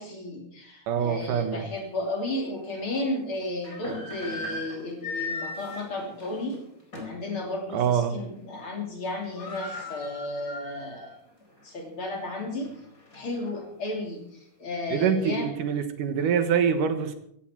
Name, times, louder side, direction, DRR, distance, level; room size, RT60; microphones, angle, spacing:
voice 1, 0.0-6.6 7.0-11.1 11.6-12.7 13.1-14.2 14.6-15.5, left 2 dB, 40° left, 1 dB, 3.7 m, -33 dB
voice 2, 0.9-1.6 7.7-8.2 14.9-17.2, right 7 dB, 85° right, 8 dB, 3.0 m, -25 dB
sound 1, 1.7-1.8 2.4-2.5 3.4-7.3 7.7-7.9 8.2-8.6 8.9-9.0 9.1-11.1 11.5-11.6 12.2-13.6, left 3 dB, 25° left, 4.8 m, -38 dB
16.5 x 14.5 x 4.5 m, 0.70 s
omnidirectional pair, 3.6 m